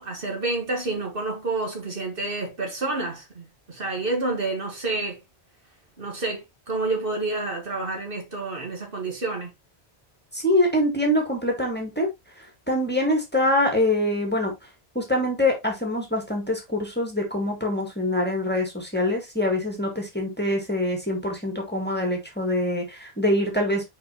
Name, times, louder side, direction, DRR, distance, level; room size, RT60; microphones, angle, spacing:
voice 1, 0.0-5.2 6.0-9.5, right 3 dB, 60° right, 2.0 m, -29 dB
voice 2, 10.3-12.1 12.7-14.5 15.0-23.8, left 1 dB, 10° left, 2.0 m, -24 dB
6.0 x 5.2 x 3.1 m
omnidirectional pair, 1.1 m